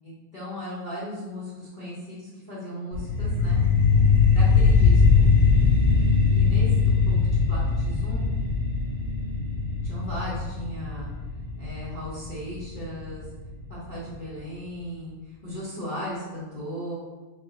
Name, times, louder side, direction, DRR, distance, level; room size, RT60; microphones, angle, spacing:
voice 1, 0.0-3.6 4.3-5.0 6.3-7.2 7.5-8.3 9.8-11.1 11.6-13.2 13.7-17.0, left 1 dB, 40° left, -10 dB, 0.8 m, -37 dB
sound 1, 2.9-13.9, left 5 dB, 60° right, 1.2 m, -21 dB
3.8 x 2.9 x 2.6 m, 1.2 s
omnidirectional pair, 1.8 m